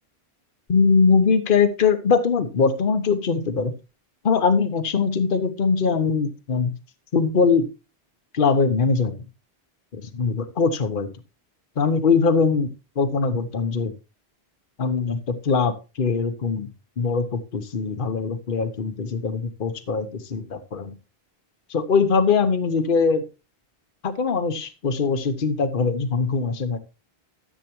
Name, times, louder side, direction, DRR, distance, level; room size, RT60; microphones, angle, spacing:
voice 1, 0.7-3.7 4.2-6.8 7.1-7.7 8.3-9.2 9.9-11.1 11.8-13.9 14.8-16.7 17.0-20.9 21.7-23.2 24.0-26.8, left 5 dB, 55° left, 9 dB, 1.1 m, -22 dB
14.0 x 7.5 x 2.9 m, 0.29 s
omnidirectional pair, 1.1 m